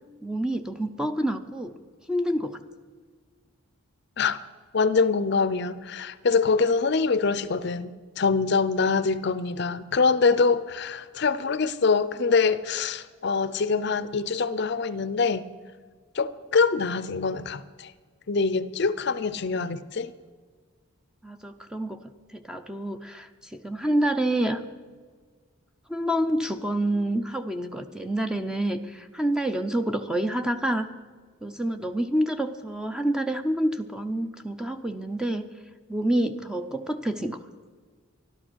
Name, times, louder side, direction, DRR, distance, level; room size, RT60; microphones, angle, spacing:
voice 1, 0.2-1.7 2.1-2.6 21.2-22.0 22.3-24.6 25.9-30.9 31.4-35.5 35.9-37.4, right 1 dB, 5° right, 0.5 m, -27 dB
voice 2, 4.7-15.5 16.1-17.9 18.3-20.1, left 4 dB, 50° left, 0.5 m, -24 dB
14.0 x 12.0 x 6.2 m
head